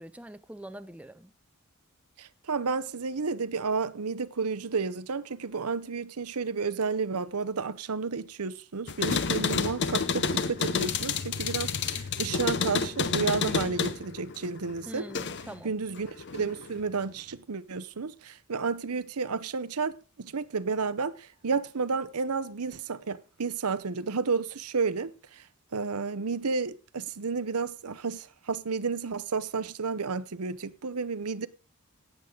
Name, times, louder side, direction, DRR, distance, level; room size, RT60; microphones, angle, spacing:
voice 1, 0.0-1.3 14.9-15.7, right 1 dB, 5° right, 0.5 m, -43 dB
voice 2, 2.2-15.1 15.6-25.4 25.7-31.5, right 4 dB, 90° right, 0.8 m, -31 dB
sound 1, 8.9-15.6 16.0-16.8, left 5 dB, 50° left, 0.8 m, -30 dB
17.5 x 8.2 x 3.8 m
head